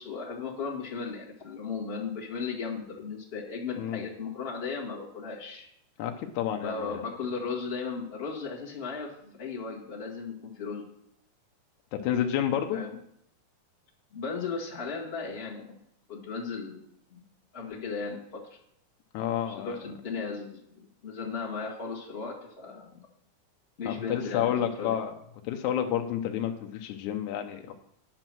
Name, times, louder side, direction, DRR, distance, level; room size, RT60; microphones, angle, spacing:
voice 1, 0.0-5.7 6.6-10.8 12.7-12.9 14.1-15.8 16.1-16.8 17.1-17.2 17.5-18.4 19.5-23.0 23.8-24.5 24.8-24.9, left 5 dB, 45° left, -5 dB, 0.7 m, -36 dB
voice 2, 6.0-7.0 11.9-12.8 19.1-19.7 23.9-25.1 25.4-27.7, left 10 dB, 75° left, 4 dB, 1.8 m, -30 dB
9.8 x 6.0 x 6.1 m, 0.72 s
omnidirectional pair, 4.1 m